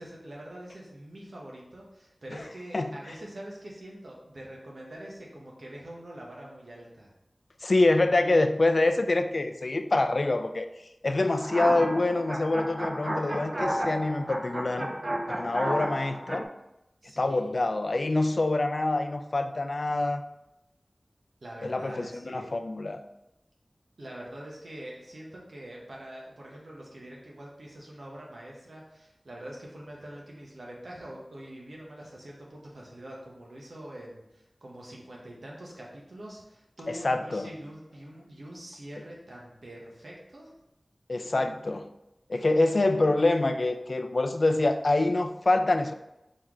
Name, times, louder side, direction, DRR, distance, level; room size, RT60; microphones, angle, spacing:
voice 1, 0.0-7.1 17.0-17.5 21.4-22.5 24.0-40.5, right 1 dB, 85° right, -3 dB, 1.1 m, -44 dB
voice 2, 7.6-10.7 11.0-14.9 15.3-16.5 17.2-20.2 21.6-23.0 37.0-37.5 41.1-41.9 42.3-45.9, left 2 dB, 65° left, 8 dB, 0.3 m, -25 dB
sound 1, 11.4-16.4, right 1 dB, 45° right, 0.5 m, -32 dB
4.3 x 3.7 x 3.1 m, 0.90 s
wide cardioid pair, 45°, 0 cm